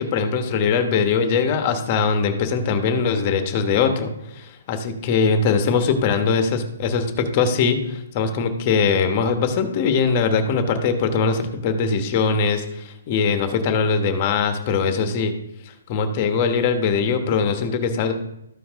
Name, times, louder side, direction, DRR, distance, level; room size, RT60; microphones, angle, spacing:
voice 1, 0.0-15.3 15.7-18.1, left 5 dB, 30° left, 7 dB, 1.1 m, -21 dB
13.5 x 4.7 x 3.6 m, 0.83 s
hypercardioid pair, 165°, 0 cm